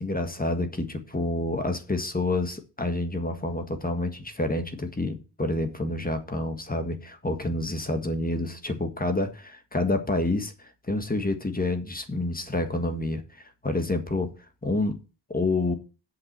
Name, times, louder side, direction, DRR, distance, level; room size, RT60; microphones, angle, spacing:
voice 1, 0.0-14.3 14.6-15.0 15.3-15.7, left 2 dB, 20° left, 1.6 m, -28 dB
8.4 x 5.9 x 7.5 m
wide cardioid pair, 130°, 42 cm